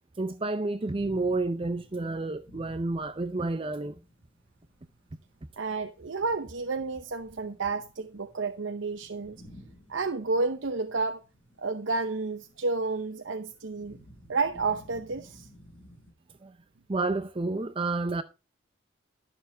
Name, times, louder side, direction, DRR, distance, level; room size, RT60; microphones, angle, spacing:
voice 1, 0.2-4.0 16.4-16.5 16.9-18.2, right 2 dB, 30° right, 0.5 m, -30 dB
sound 1, 0.9-16.1, equal, 10° left, 6.6 m, -55 dB
voice 2, 5.6-9.4 9.9-11.2 11.6-14.0 14.3-15.5, right 3 dB, 85° right, 0.8 m, -31 dB
13.0 x 7.0 x 3.9 m
head